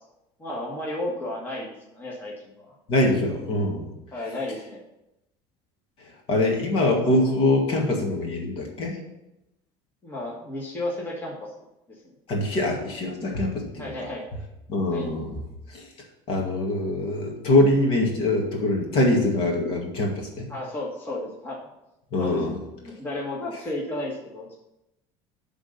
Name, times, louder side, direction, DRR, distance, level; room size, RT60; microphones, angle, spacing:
voice 1, 0.4-2.7 4.1-4.8 10.0-11.5 11.9-12.0 13.8-14.2 14.9-15.1 20.5-21.6 22.2-22.4 22.8-24.5, left 1 dB, 15° left, -3 dB, 1.6 m, -33 dB
voice 2, 2.9-3.9 6.3-9.0 12.3-13.9 14.7-15.4 15.7-15.9 16.3-20.5 22.1-22.6, left 1 dB, 50° left, 1 dB, 2.1 m, -23 dB
11.0 x 3.9 x 6.5 m, 0.89 s
cardioid pair, 160°, 12 cm